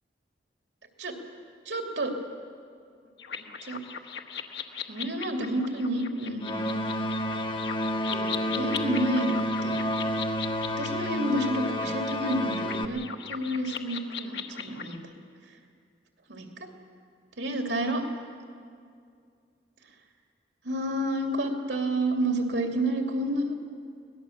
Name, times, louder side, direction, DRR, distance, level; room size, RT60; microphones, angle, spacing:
voice 1, 1.6-2.1 3.3-3.8 4.9-6.8 8.1-9.8 10.7-13.0 13.3-15.0 16.3-16.7 17.4-18.0 20.6-23.5, right 1 dB, 85° right, 2 dB, 2.8 m, -30 dB
sound 1, 3.2-15.0, left 7 dB, 75° left, 1.3 m, -39 dB
sound 2, 6.4-12.9, equal, 25° left, 1.0 m, -30 dB
24.0 x 19.5 x 7.3 m, 2.3 s
head